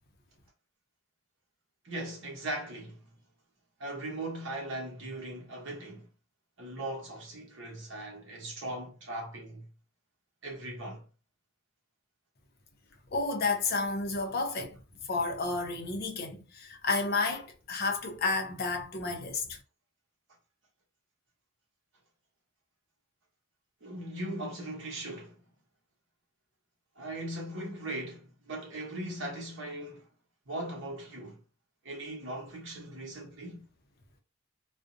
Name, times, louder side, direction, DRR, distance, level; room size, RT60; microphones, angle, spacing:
voice 1, 1.8-3.2 3.8-6.1 6.6-9.7 10.4-11.1 23.8-25.4 27.0-30.1 30.5-31.4 31.8-33.6, right 1 dB, 60° right, 0.9 m, -39 dB
voice 2, 13.1-14.8 15.1-19.6, left 3 dB, 45° left, 0.5 m, -31 dB
2.5 x 2.0 x 2.5 m
head